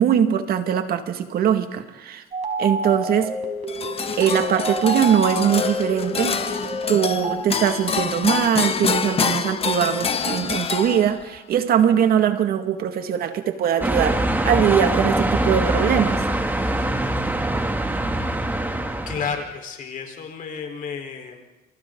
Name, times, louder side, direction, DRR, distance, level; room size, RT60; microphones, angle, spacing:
voice 1, 0.0-2.2 2.6-3.3 4.2-6.4 6.9-16.2, right 9 dB, 65° right, 7 dB, 2.0 m, -21 dB
sound 1, 2.3-7.4, right 1 dB, 45° right, 4.6 m, -29 dB
sound 2, 3.7-11.4, left 6 dB, 35° left, 1.4 m, -26 dB
sound 3, 13.8-19.4, right 1 dB, 10° right, 2.6 m, -23 dB
voice 2, 19.1-21.4, left 6 dB, 50° left, 3 dB, 4.2 m, -31 dB
29.0 x 28.0 x 3.9 m, 1.1 s
cardioid pair, 110°, 17 cm